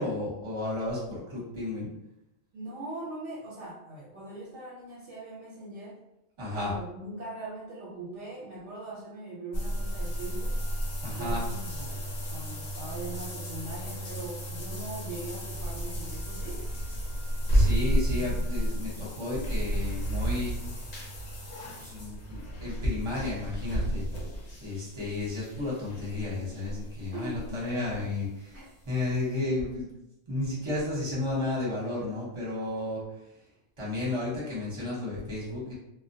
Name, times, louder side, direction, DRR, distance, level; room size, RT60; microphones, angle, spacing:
voice 1, 0.0-1.9 6.4-6.7 11.0-11.4 17.5-20.5 21.8-24.0 24.6-29.9 30.3-33.0 33.8-35.7, left 2 dB, 25° right, -6 dB, 0.9 m, -32 dB
voice 2, 2.5-6.0 6.5-10.6 11.1-16.7 27.1-27.4 28.5-28.7, right 2 dB, 70° right, -5 dB, 0.9 m, -41 dB
sound 1, 9.5-28.2 28.5-28.6 29.1-29.2, right 1 dB, 80° left, 1.1 m, -32 dB
2.2 x 2.1 x 2.6 m, 0.87 s
omnidirectional pair, 1.3 m